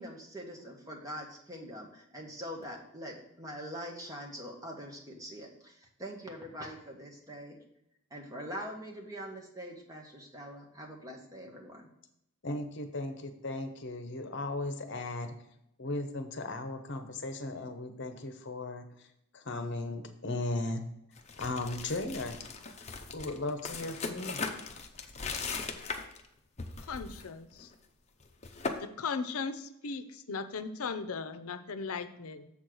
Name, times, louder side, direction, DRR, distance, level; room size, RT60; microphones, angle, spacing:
voice 1, 0.0-7.6 8.1-11.9, equal, 15° right, 1 dB, 1.4 m, -43 dB
voice 2, 12.4-15.3 15.8-18.8 19.3-20.9 21.4-22.4 23.1-24.4, left 2 dB, 55° left, 7 dB, 0.9 m, -36 dB
sound 1, 21.2-26.3 26.6-27.3 27.5-27.7 28.2-28.8, left 4 dB, 30° left, 0.8 m, -39 dB
voice 3, 26.9-27.7 28.8-32.5, left 5 dB, 85° left, 11 dB, 0.6 m, -37 dB
7.2 x 4.4 x 6.3 m, 0.79 s
head